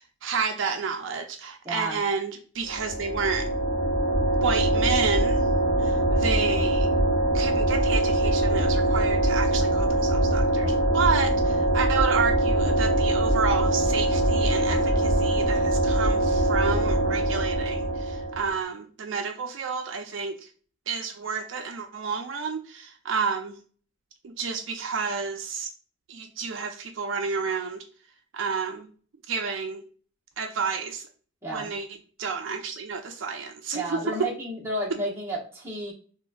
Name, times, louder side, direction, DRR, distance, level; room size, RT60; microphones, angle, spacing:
voice 1, 0.0-3.5 4.4-5.5 5.8-6.9 7.3-20.4 20.9-23.6 24.2-25.7 26.1-27.8 28.3-28.9 29.3-29.8 30.4-31.1 31.5-31.9 32.2-34.0, right 5 dB, 65° right, 5 dB, 0.4 m, -30 dB
voice 2, 1.6-2.0 31.4-31.7 33.7-35.9, right 1 dB, 15° right, -5 dB, 1.0 m, -31 dB
sound 1, 2.7-18.5, right 1 dB, 70° left, 1.0 m, -23 dB
4.0 x 2.4 x 2.3 m, 0.42 s
head